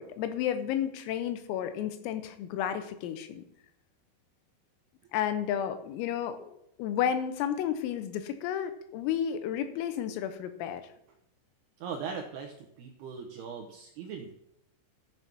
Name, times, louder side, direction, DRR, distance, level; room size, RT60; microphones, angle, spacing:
voice 1, 0.0-3.5 5.1-10.8, left 9 dB, 90° left, 10 dB, 3.7 m, -32 dB
voice 2, 11.8-14.3, right 6 dB, 85° right, 3 dB, 2.3 m, -40 dB
13.5 x 6.9 x 6.1 m, 0.78 s
omnidirectional pair, 5.9 m